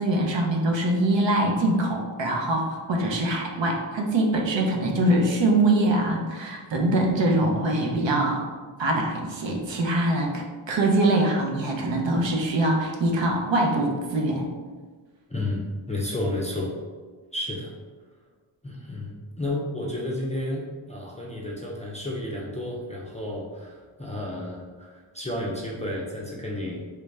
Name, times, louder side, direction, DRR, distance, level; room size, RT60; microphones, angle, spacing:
voice 1, 0.0-8.5 8.8-14.5, right 1 dB, 65° right, 0 dB, 0.7 m, -23 dB
voice 2, 15.3-16.8 17.3-17.7 18.6-26.8, left 1 dB, 15° left, -5 dB, 0.4 m, -32 dB
3.2 x 2.5 x 3.2 m, 1.4 s
wide cardioid pair, 85°, 50 cm